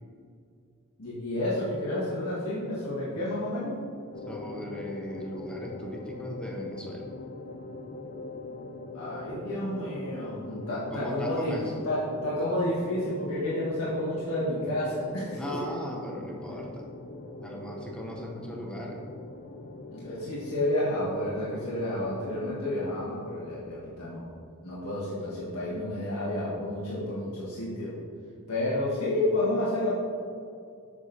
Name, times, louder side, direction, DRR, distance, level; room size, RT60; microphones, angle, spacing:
voice 1, 1.0-3.8 8.9-11.5 11.8-15.7 19.9-24.3 24.6-27.9 28.5-30.0, left 1 dB, 90° left, -8 dB, 1.5 m, -30 dB
sound 1, 4.1-22.5, left 2 dB, 40° left, 0.3 m, -42 dB
voice 2, 4.3-7.1 10.9-11.9 15.3-16.9 17.4-19.0, equal, 5° left, -1 dB, 0.6 m, -38 dB
7.4 x 6.2 x 2.7 m, 2.4 s
head